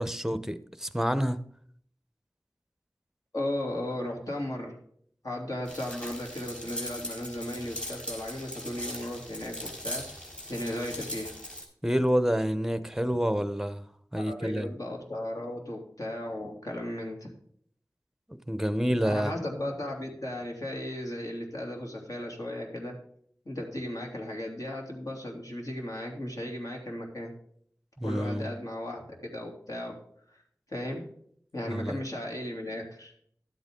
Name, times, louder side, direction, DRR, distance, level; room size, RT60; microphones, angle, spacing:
voice 1, 0.0-1.4 11.8-13.8 14.1-14.7 18.3-19.3 28.0-28.5 31.7-32.0, equal, 5° right, 0.8 m, -28 dB
voice 2, 3.3-4.8 5.2-10.0 10.5-11.3 14.1-17.3 19.0-23.0 23.4-27.3 28.0-30.0 30.7-31.0 31.5-33.1, left 1 dB, 55° left, 3.0 m, -36 dB
sound 1, 5.7-11.6, left 1 dB, 15° left, 3.7 m, -40 dB
12.0 x 8.1 x 3.8 m
wide cardioid pair, 40°, 7 cm